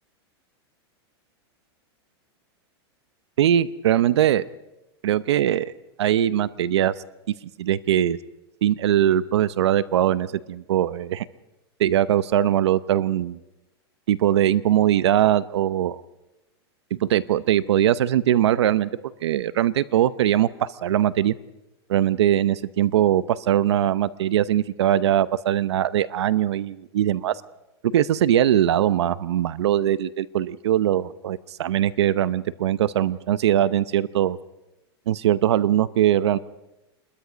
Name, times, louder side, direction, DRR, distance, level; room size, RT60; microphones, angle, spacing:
voice 1, 3.4-4.5 5.0-5.7 6.0-6.9 7.6-8.2 8.6-11.3 11.8-13.4 14.1-16.0 16.9-18.9 19.2-21.3 21.9-27.4 27.8-34.4 35.1-36.4, right 11 dB, 85° right, 17 dB, 0.8 m, -21 dB
27.0 x 21.5 x 5.2 m, 0.97 s
supercardioid pair, 140°, 14 cm